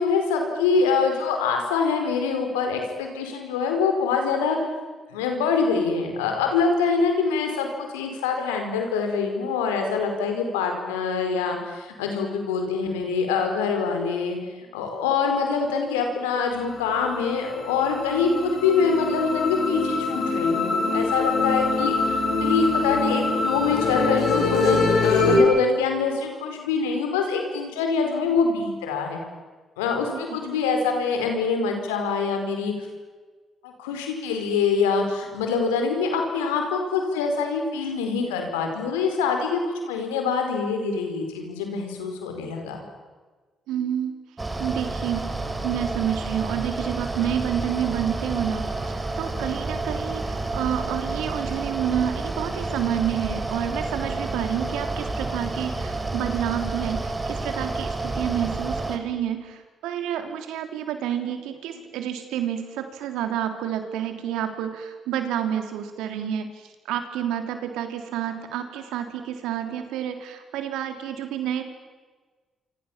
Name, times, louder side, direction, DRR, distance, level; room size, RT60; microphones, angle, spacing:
voice 1, 0.0-4.6 5.1-14.4 14.7-29.2 29.8-32.7 33.6-42.8, left 5 dB, 90° left, 4 dB, 4.7 m, -25 dB
sound 1, 16.5-25.4, left 3 dB, 65° left, 8.0 m, -24 dB
voice 2, 30.1-30.4 43.7-44.1 44.6-45.3 45.6-71.6, right 10 dB, 75° right, 7 dB, 3.2 m, -29 dB
Mechanical fan, 44.4-59.0, right 2 dB, 25° right, 4.8 m, -30 dB
27.5 x 26.0 x 7.4 m, 1.4 s
hypercardioid pair, 50°, 0 cm